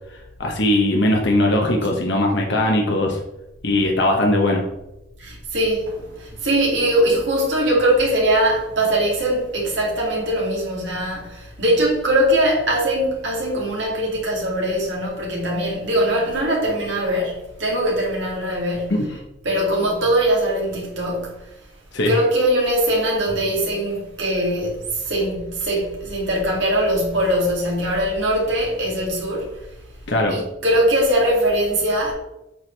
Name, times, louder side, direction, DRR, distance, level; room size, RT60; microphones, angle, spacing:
voice 1, 0.4-3.2 3.6-4.6 19.0-19.1 21.9-22.2 30.1-30.4, left 1 dB, 55° left, 0.9 m, -19 dB
voice 2, 5.2-19.1 19.4-21.3 22.0-29.5 30.3-32.1, right 1 dB, 60° right, 2.5 m, -21 dB
8.1 x 4.8 x 3.3 m
head